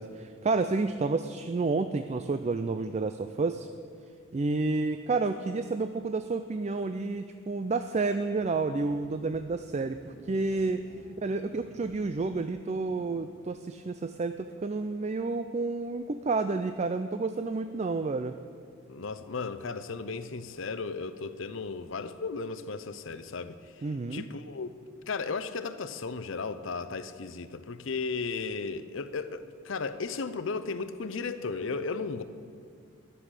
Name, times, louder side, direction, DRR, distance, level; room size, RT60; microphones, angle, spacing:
voice 1, 0.0-3.7 4.3-10.8 11.2-18.3 23.8-24.3, right 3 dB, 30° right, 9 dB, 0.4 m, -30 dB
sound 1, 8.4-13.4, equal, 50° left, 1.5 m, -53 dB
voice 2, 18.9-24.7 25.1-32.2, left 4 dB, 65° left, 11 dB, 0.7 m, -35 dB
13.5 x 7.0 x 9.8 m, 2.2 s
head